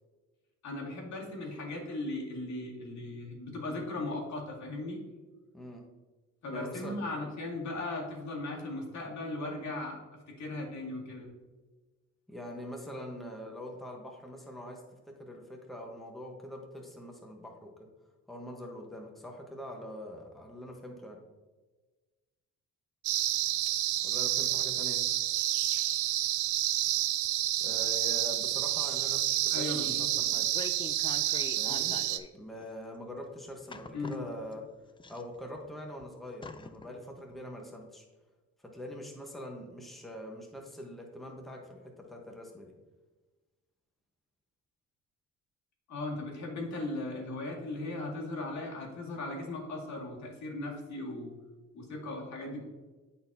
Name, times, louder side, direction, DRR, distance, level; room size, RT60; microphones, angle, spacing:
voice 1, 0.6-5.0 6.4-11.3 29.5-30.1 33.9-34.2 45.9-51.3 51.7-52.6, left 2 dB, 65° left, -2 dB, 2.2 m, -37 dB
voice 2, 5.5-5.9 6.5-7.0 12.3-17.9 18.3-21.2 24.0-25.0 27.6-30.5 31.6-32.0 32.3-34.6 35.1-38.0 38.6-42.7, left 1 dB, ahead, 0 dB, 1.1 m, -43 dB
sound 1, 23.0-32.2, right 14 dB, 85° right, 0.5 m, -29 dB
sound 2, 30.2-32.3 32.6-32.7 33.7-34.6 35.0-35.7 36.0-36.1 36.4-36.9 37.3-37.4, left 4 dB, 15° left, 0.4 m, -44 dB
11.0 x 4.1 x 2.8 m, 1.3 s
cardioid pair, 90°, 30 cm